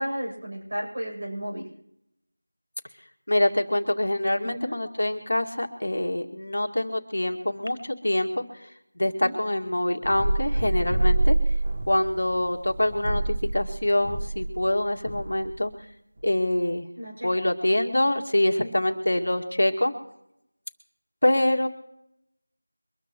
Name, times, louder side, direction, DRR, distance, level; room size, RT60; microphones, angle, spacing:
voice 1, 0.0-1.7 4.4-4.8 9.2-9.4 17.0-17.3 18.6-18.8, equal, 45° right, -1 dB, 7.7 m, -33 dB
voice 2, 3.3-8.4 9.0-11.4 11.9-15.7 16.2-16.9 17.2-19.9 21.2-21.7, left 1 dB, 60° left, 4 dB, 2.2 m, -25 dB
sound 1, 10.0-15.6, right 2 dB, 25° right, 1.7 m, -26 dB
24.5 x 13.5 x 3.1 m, 0.76 s
figure-of-eight pair, 175°, 0 cm